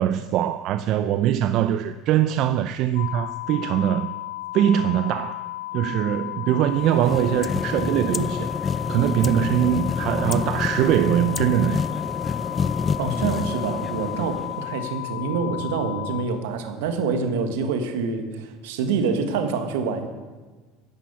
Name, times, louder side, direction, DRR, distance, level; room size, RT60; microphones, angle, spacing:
voice 1, 0.0-4.1 4.5-5.4 5.7-8.5 8.9-11.9, right 11 dB, 60° right, 0.5 m, -22 dB
sound 1, 3.0-16.2, left 18 dB, 75° left, 1.0 m, -34 dB
sound 2, 6.7-15.0, left 5 dB, 30° left, 0.5 m, -28 dB
voice 2, 13.0-20.1, right 5 dB, 80° right, 1.6 m, -26 dB
10.5 x 10.0 x 8.3 m
hypercardioid pair, 90°, 0 cm